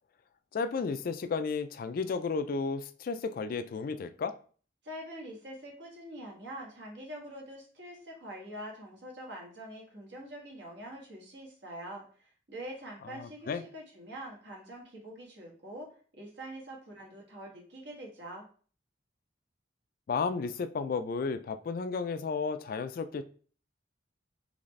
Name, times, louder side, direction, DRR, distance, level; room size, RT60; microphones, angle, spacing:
voice 1, 0.5-4.3 13.0-13.6 20.1-23.2, left 5 dB, 50° left, 11 dB, 0.3 m, -33 dB
voice 2, 4.8-15.9 16.1-18.4, right 1 dB, 65° right, -1 dB, 1.4 m, -45 dB
3.9 x 3.2 x 3.2 m, 0.42 s
head